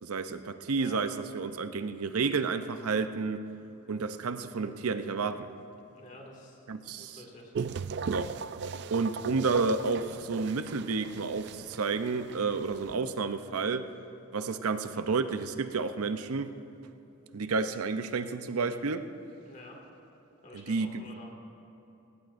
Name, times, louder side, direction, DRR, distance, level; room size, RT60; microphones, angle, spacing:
voice 1, 0.0-3.4 3.9-5.5 6.7-7.2 8.1-8.3 8.9-13.9 14.3-16.5 17.3-19.0 20.5-21.0, right 4 dB, 85° right, 10 dB, 0.6 m, -31 dB
voice 2, 5.9-6.7 6.9-7.5 19.4-19.8 20.4-21.3, left 1 dB, 35° left, -1 dB, 2.1 m, -49 dB
sound 1, 7.5-13.0, right 5 dB, 50° right, 0.3 m, -38 dB
19.5 x 17.5 x 2.6 m, 3.0 s
head